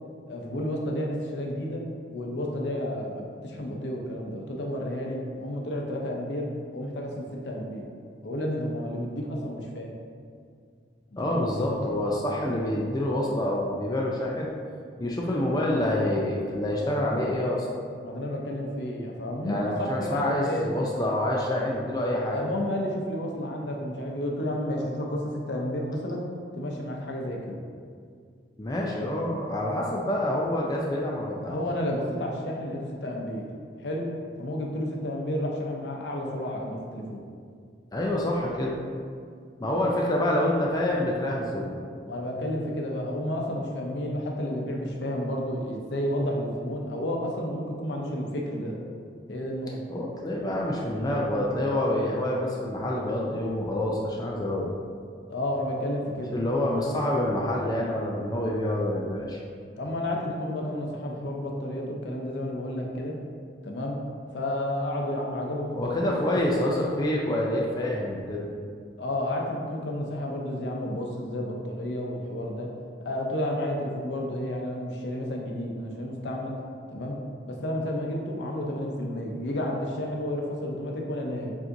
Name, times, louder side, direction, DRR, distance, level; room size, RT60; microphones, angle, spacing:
voice 1, 0.3-1.8 2.1-7.9 8.2-9.9 11.2-11.8 18.0-20.7 22.2-26.3 26.5-27.6 31.5-33.5 33.8-34.1 34.4-37.3 42.1-48.8 49.3-49.8 55.3-56.3 59.7-63.2 63.6-64.0 64.3-66.5 69.0-72.7 73.0-76.6 76.9-77.2 77.5-81.6, left 1 dB, 85° left, 0 dB, 0.6 m, -31 dB
voice 2, 11.2-14.5 15.0-17.7 19.4-22.4 28.6-31.6 37.9-38.8 39.6-41.8 49.9-54.7 56.3-59.4 65.7-68.4, left 1 dB, 20° left, -3 dB, 0.4 m, -27 dB
7.1 x 2.6 x 2.6 m, 2.2 s
head